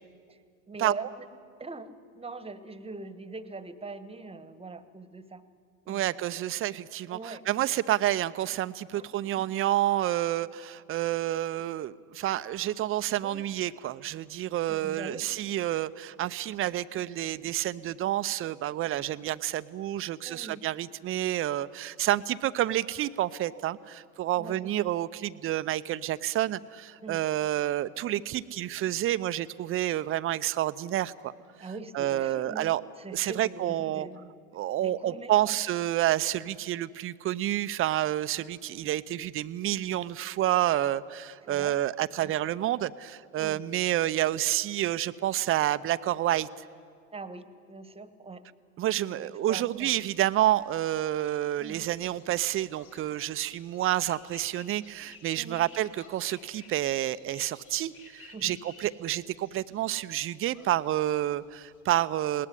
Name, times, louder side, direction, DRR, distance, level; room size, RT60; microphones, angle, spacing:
voice 1, 0.7-1.3 1.6-5.4 5.8-6.2 7.1-7.4 8.9-9.5 13.2-13.6 14.7-15.2 20.2-20.6 24.4-24.7 27.0-27.2 31.6-32.7 33.0-34.3 34.8-35.6 41.4-41.8 42.2-42.3 43.3-43.6 47.1-48.4 49.1-50.0 51.6-51.9 55.3-55.6 58.3-58.5, right 3 dB, 15° right, 12 dB, 1.4 m, -42 dB
voice 2, 5.9-31.3 31.9-32.8 33.1-34.1 34.5-46.5 48.8-62.5, right 13 dB, 30° right, 14 dB, 0.7 m, -29 dB
sound 1, 49.7-61.8, left 4 dB, 70° left, 3.7 m, -56 dB
20.5 x 18.0 x 10.0 m, 2.1 s
hypercardioid pair, 80°, 43 cm